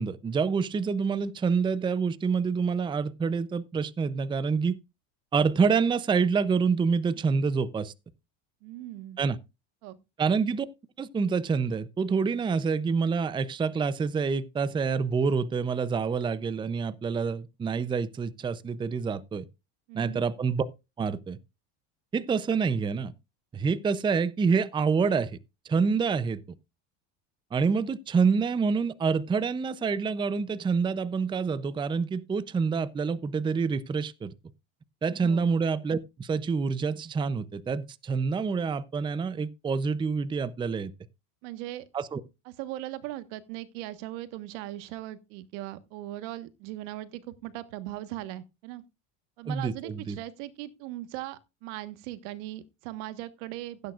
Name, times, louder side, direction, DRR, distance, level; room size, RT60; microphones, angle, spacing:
voice 1, 0.0-4.8 5.3-7.9 9.2-9.4 10.2-10.7 11.0-19.5 19.9-20.7 21.0-21.4 22.1-23.1 23.5-25.3 25.7-26.4 27.5-34.3 35.0-40.9 41.9-42.2 49.5-50.2, right 5 dB, 15° right, 0.6 m, -27 dB
voice 2, 8.6-9.2 9.8-10.0 19.9-20.2 35.2-35.5 41.4-41.9 42.4-48.8 49.4-53.9, right 15 dB, 75° right, 1.5 m, -39 dB
16.0 x 9.4 x 2.5 m
supercardioid pair, 135°, 36 cm